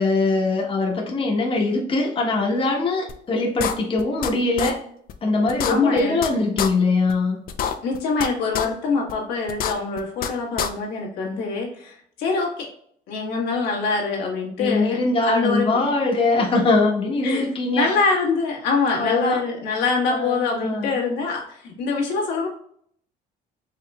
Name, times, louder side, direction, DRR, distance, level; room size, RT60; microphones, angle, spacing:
voice 1, 0.0-4.8 5.2-7.4 14.6-17.9 18.9-19.4 20.1-21.0, left 3 dB, 30° left, -1 dB, 1.0 m, -22 dB
sound 1, 3.1-3.2 3.6-4.3 4.6-4.7 5.1-5.2 5.5-6.3 6.6-6.7 7.1-7.2 7.5-8.3 8.5-8.7 9.1-9.2 9.5-10.3 10.6-10.7, left 8 dB, 60° left, 0.5 m, -26 dB
voice 2, 5.7-6.1 7.8-12.7 13.1-15.8 17.2-17.5 17.7-22.5, left 4 dB, 90° left, -2 dB, 1.4 m, -24 dB
4.8 x 3.0 x 2.2 m, 0.63 s
cardioid pair, 110°, 17 cm